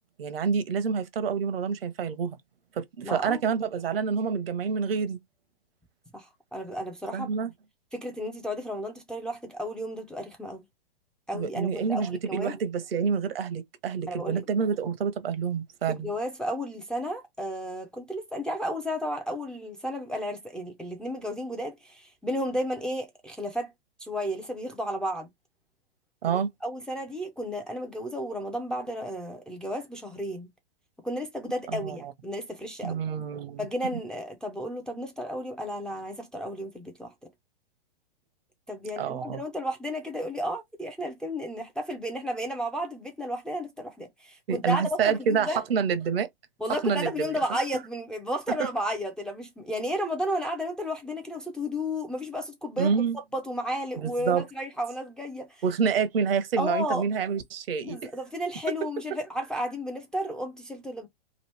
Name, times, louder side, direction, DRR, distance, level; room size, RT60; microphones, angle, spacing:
voice 1, 0.2-2.4 2.8-5.2 7.1-7.5 11.3-16.1 26.2-26.5 31.7-32.0 32.8-33.7 39.0-39.4 44.5-46.3 46.8-47.3 52.8-53.2 54.0-54.4 55.6-58.0, right 6 dB, 70° right, 0.9 m, -27 dB
voice 2, 3.0-3.4 6.1-6.3 6.5-7.3 7.9-10.6 11.3-12.6 14.1-14.4 15.9-23.7 24.0-25.3 26.3-30.5 31.0-33.0 33.6-37.1 38.7-45.6 46.6-53.0 53.3-55.6 56.6-57.1 57.8-61.1, equal, 5° left, 0.4 m, -33 dB
3.0 x 2.4 x 3.2 m
hypercardioid pair, 120°, 30 cm